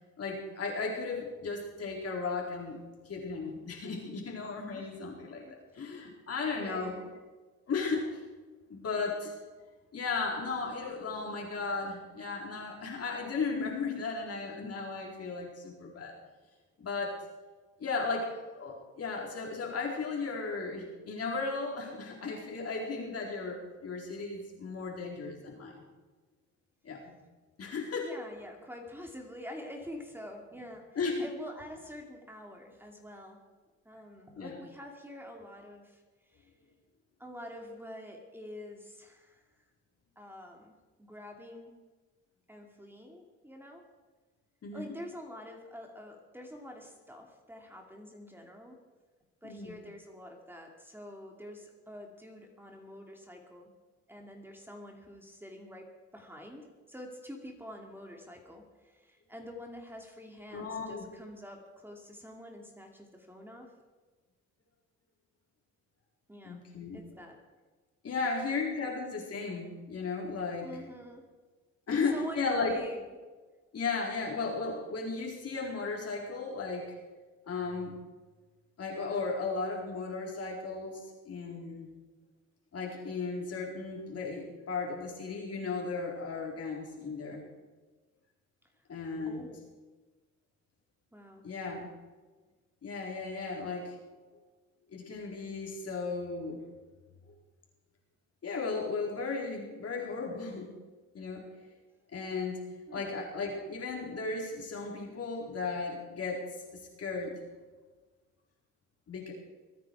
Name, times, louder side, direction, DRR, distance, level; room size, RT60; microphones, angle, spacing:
voice 1, 0.2-2.8 3.0-5.5 5.7-6.9 7.7-8.2 8.7-9.4 9.9-16.2 16.8-17.2 17.8-25.7 26.8-27.2 27.6-28.1 31.0-31.2 34.4-34.6 44.6-44.9 49.4-49.8 60.5-61.1 66.4-67.0 68.0-70.7 71.9-72.7 73.7-76.9 77.5-77.9 78.8-81.9 82.7-87.4 88.9-89.5 91.4-91.9 92.8-93.9 94.9-96.6 98.4-100.7 101.1-101.4 102.1-102.6 102.9-106.4 107.0-107.4 109.1-109.3, left 4 dB, 55° left, -1 dB, 4.3 m, -35 dB
voice 2, 5.4-5.9 6.5-7.1 28.0-30.9 31.2-33.4 33.8-36.5 37.2-39.4 40.2-40.7 41.0-41.7 42.5-43.8 44.7-48.8 49.4-53.7 54.1-63.7 66.3-66.6 66.9-67.4 70.6-71.3 71.9-73.0 89.3-89.6 91.1-91.5 102.9-103.1, left 1 dB, 5° right, 2 dB, 2.5 m, -46 dB
23.5 x 9.5 x 4.8 m, 1.3 s
cardioid pair, 90°, 30 cm